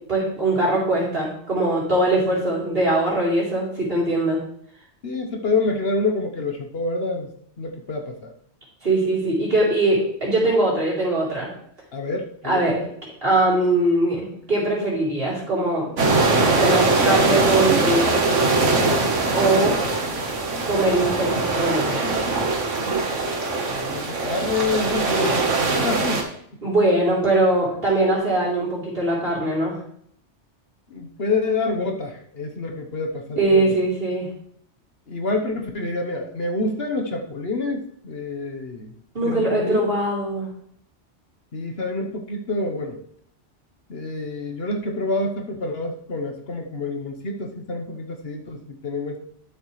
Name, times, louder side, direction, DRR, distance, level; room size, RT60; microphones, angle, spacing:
voice 1, 0.0-4.4 8.8-11.5 12.4-12.8 13.2-15.9 16.6-18.3 19.3-19.8 20.7-22.2 26.6-29.8 33.4-34.3 39.1-40.5, right 2 dB, 50° right, -6 dB, 3.8 m, -21 dB
voice 2, 5.0-7.3 7.6-8.3 11.9-12.9 23.6-26.2 30.9-33.8 35.1-38.9 39.2-39.8 41.5-43.0 43.9-49.2, left 3 dB, 55° left, 3 dB, 1.3 m, -27 dB
sound 1, 16.0-26.2, right 3 dB, 85° right, 1.7 m, -21 dB
12.0 x 7.2 x 3.2 m, 0.67 s
omnidirectional pair, 1.2 m